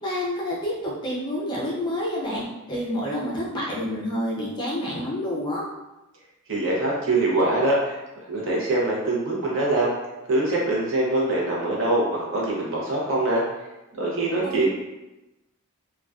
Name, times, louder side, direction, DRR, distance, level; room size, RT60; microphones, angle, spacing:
voice 1, 0.0-2.4 2.7-5.6 14.4-14.7, left 1 dB, 20° left, -5 dB, 0.4 m, -28 dB
voice 2, 6.5-8.0 8.3-9.9 10.3-13.4 14.0-14.7, right 2 dB, 55° right, -4 dB, 0.7 m, -23 dB
2.4 x 2.2 x 2.3 m, 0.98 s
head